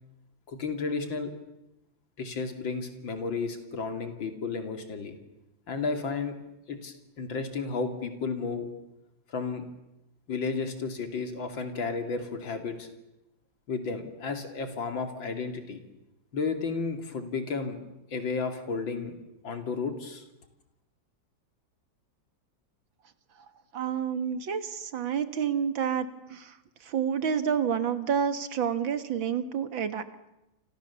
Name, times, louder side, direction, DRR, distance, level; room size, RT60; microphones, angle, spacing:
voice 1, 0.5-1.3 2.2-5.2 5.7-6.4 6.7-8.7 9.3-9.6 10.3-12.9 13.7-15.8 16.3-17.8 18.1-19.1 19.4-20.2, left 4 dB, 85° left, 7 dB, 3.3 m, -32 dB
voice 2, 23.7-30.0, right 7 dB, 90° right, 11 dB, 2.4 m, -29 dB
29.0 x 26.5 x 7.0 m, 0.93 s
omnidirectional pair, 2.0 m